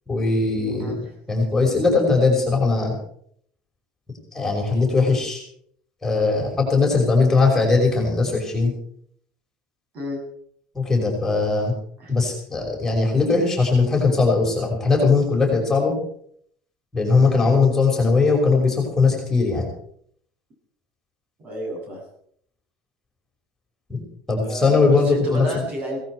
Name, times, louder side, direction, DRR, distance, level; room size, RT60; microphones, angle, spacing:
voice 1, 0.1-0.9 1.3-3.0 4.3-5.4 6.0-8.7 10.7-11.7 12.1-15.9 16.9-19.7 23.9-24.0 24.3-25.5, left 4 dB, 10° left, -1 dB, 5.6 m, -19 dB
voice 2, 0.8-1.1 9.9-10.2 12.0-12.1 17.2-17.4 21.4-22.0 24.4-26.0, equal, 45° right, 1 dB, 8.0 m, -31 dB
18.0 x 14.5 x 4.8 m, 0.64 s
cardioid pair, 125°, 3 cm